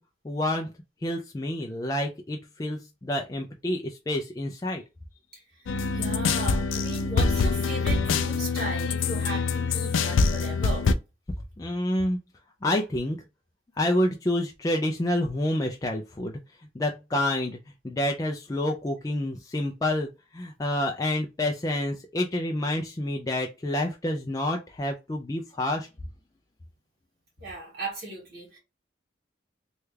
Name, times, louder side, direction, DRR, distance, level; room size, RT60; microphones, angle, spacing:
voice 1, 0.2-0.7 1.0-4.8 11.6-12.2 12.6-13.2 13.8-16.4 16.7-17.6 17.8-25.9, left 1 dB, 20° left, 0.3 m, -28 dB
sound 1, 5.7-10.9, left 4 dB, 90° left, 0.4 m, -25 dB
voice 2, 5.9-10.9 27.4-28.6, right 2 dB, 55° right, 1.9 m, -36 dB
3.2 x 2.3 x 3.2 m
head